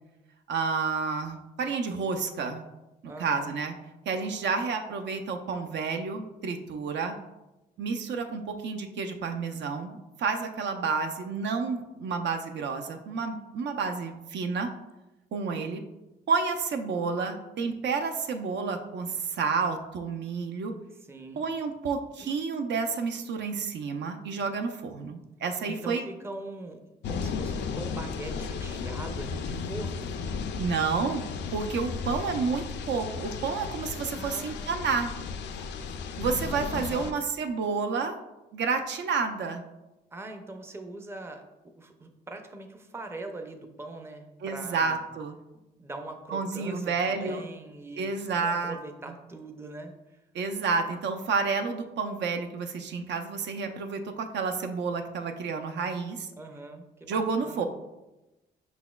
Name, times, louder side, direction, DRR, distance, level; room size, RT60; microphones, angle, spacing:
voice 1, 0.5-2.6 3.2-3.7 4.1-7.1 7.8-14.7 15.3-15.8 16.3-20.7 21.4-26.0 30.6-31.2 31.5-35.1 36.2-38.2 38.5-39.6 44.4-45.3 46.3-47.4 48.0-48.8 50.3-56.3 57.1-57.6, right 5 dB, 65° right, 5 dB, 0.5 m, -30 dB
voice 2, 3.1-3.5 21.0-21.4 22.2-22.3 25.6-26.8 27.1-30.1 34.1-34.8 36.7-37.3 40.1-41.4 41.8-45.1 45.8-50.2 56.4-57.6, right 2 dB, 10° right, 4 dB, 0.5 m, -42 dB
sound 1, 27.0-37.1, left 5 dB, 60° left, 0.4 m, -35 dB
5.6 x 4.1 x 2.3 m, 1.0 s
cardioid pair, 90°, 20 cm